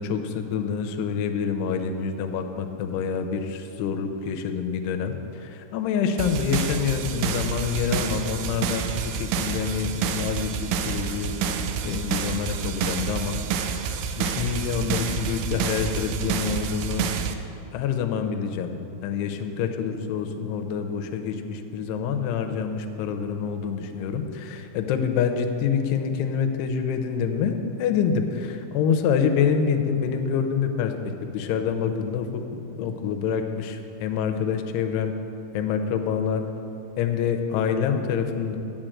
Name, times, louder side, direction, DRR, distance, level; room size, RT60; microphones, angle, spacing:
voice 1, 0.0-10.5 10.9-11.3 11.8-13.4 14.2-17.1 17.7-30.9 31.3-32.4 32.7-35.1 35.5-36.5 37.0-38.6, left 7 dB, 85° left, 6 dB, 2.7 m, -26 dB
sound 1, 6.2-17.3, right 6 dB, 90° right, 2.1 m, -28 dB
8.8 x 7.0 x 7.6 m, 2.8 s
omnidirectional pair, 4.9 m